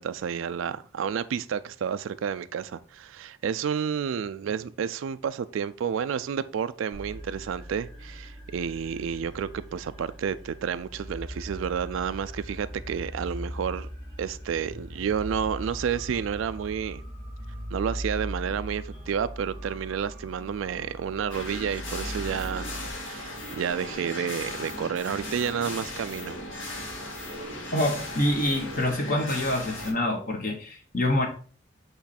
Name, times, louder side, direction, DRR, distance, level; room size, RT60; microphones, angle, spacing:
voice 1, 0.0-13.9 14.2-17.0 17.7-22.7 23.0-26.4, right 7 dB, 85° right, 0.3 m, -30 dB
sound 1, 6.9-22.9, equal, 20° left, 2.8 m, -39 dB
sound 2, 21.3-29.9, left 1 dB, 85° left, 1.8 m, -37 dB
voice 2, 27.7-31.3, left 1 dB, 45° left, 1.1 m, -26 dB
8.1 x 3.1 x 4.2 m
head